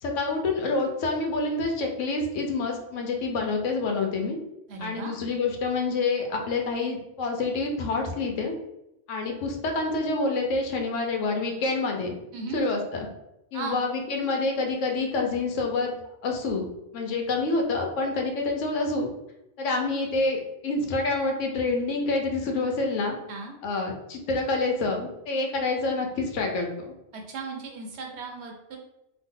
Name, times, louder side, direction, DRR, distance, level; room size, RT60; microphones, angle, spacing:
voice 1, 0.0-4.4 4.8-8.5 9.1-12.1 12.5-13.1 13.5-15.9 16.2-16.7 16.9-19.1 19.6-23.2 23.6-26.7, left 3 dB, 80° left, 2 dB, 1.0 m, -27 dB
voice 2, 4.7-5.1 12.3-12.6 13.5-13.8 23.3-23.5 27.1-28.8, right 4 dB, 65° right, 2 dB, 0.8 m, -36 dB
2.8 x 2.1 x 3.6 m, 0.88 s
omnidirectional pair, 1.3 m